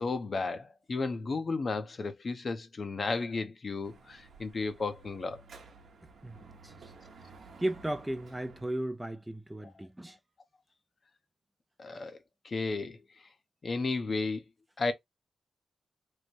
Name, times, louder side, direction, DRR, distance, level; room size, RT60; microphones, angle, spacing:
voice 1, 0.0-5.4 9.6-9.7 11.8-12.2 12.4-13.0 13.6-14.4 14.8-14.9, left 3 dB, 40° left, 0.7 m, -33 dB
Dog / Motorcycle, 3.8-8.8, right 4 dB, 65° right, 0.9 m, -53 dB
voice 2, 7.6-10.2, right 1 dB, 10° right, 0.4 m, -35 dB
3.2 x 2.1 x 4.2 m
cardioid pair, 95°, 0 cm